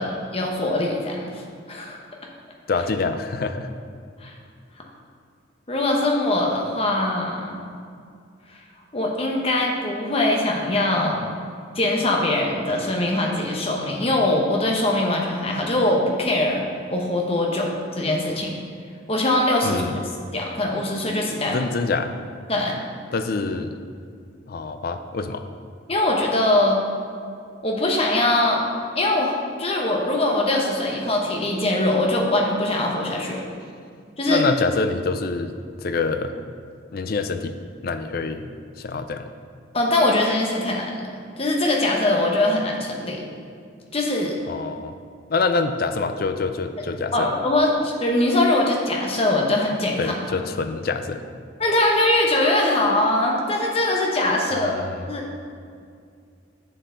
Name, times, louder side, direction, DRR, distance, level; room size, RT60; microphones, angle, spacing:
voice 1, 0.0-1.4 1.7-2.0 4.2-4.3 5.7-7.5 8.9-11.3 11.7-16.6 16.9-17.7 18.0-18.5 19.1-20.0 20.3-21.6 22.5-22.8 25.9-26.8 27.6-28.6 29.0-33.4 34.2-34.4 39.7-41.1 41.4-43.2 43.9-44.3 47.1-50.1 51.6-54.8 55.1-55.3, left 1 dB, 30° left, -1 dB, 1.0 m, -22 dB
voice 2, 2.7-3.7 19.6-20.0 21.5-22.1 23.1-23.7 24.5-25.4 34.3-35.5 35.8-36.3 36.9-37.6 37.8-38.5 38.8-39.3 44.5-44.9 45.3-47.3 50.0-51.2 54.6-55.1, left 4 dB, 50° left, 8 dB, 0.4 m, -26 dB
7.4 x 6.6 x 3.8 m, 2.3 s
head